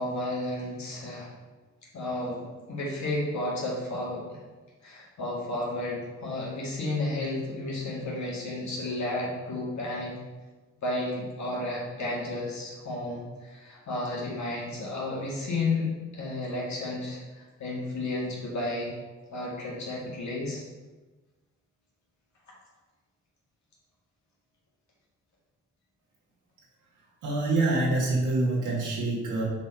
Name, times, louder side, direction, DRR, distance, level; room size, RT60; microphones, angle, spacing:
voice 1, 0.0-1.3 1.9-4.4 4.8-10.2 10.8-18.9 19.3-20.6, left 2 dB, 70° left, -5 dB, 2.2 m, -32 dB
voice 2, 27.2-29.4, right 2 dB, 90° right, -6 dB, 2.2 m, -26 dB
6.1 x 4.5 x 4.5 m, 1.3 s
cardioid pair, 55°, 30 cm